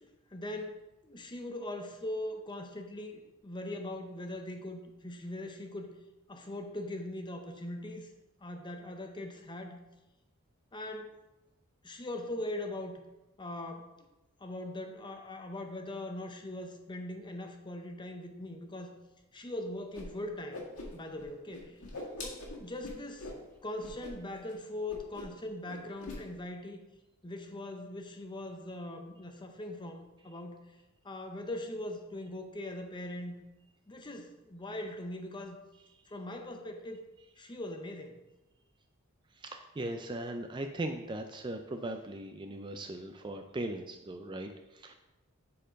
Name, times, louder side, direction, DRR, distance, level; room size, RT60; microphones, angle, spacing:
voice 1, 0.0-5.9 6.3-8.1 8.4-9.8 10.7-11.1 11.8-13.0 13.4-14.1 14.4-19.0 19.3-20.6 20.9-21.8 22.2-23.3 23.6-26.8 27.2-30.6 31.0-33.4 33.9-35.6 36.1-37.0 37.4-38.2, left 1 dB, 20° left, 5 dB, 0.7 m, -41 dB
Whoosh swoosh swish, 19.9-20.0 20.3-21.2 21.5-23.4 23.8-24.1 24.4-24.5 24.9-25.4 25.6-26.2, left 2 dB, 80° left, 1.9 m, -43 dB
voice 2, 39.4-44.9, right 1 dB, 20° right, 6 dB, 0.4 m, -39 dB
7.5 x 4.5 x 5.1 m, 1.0 s
head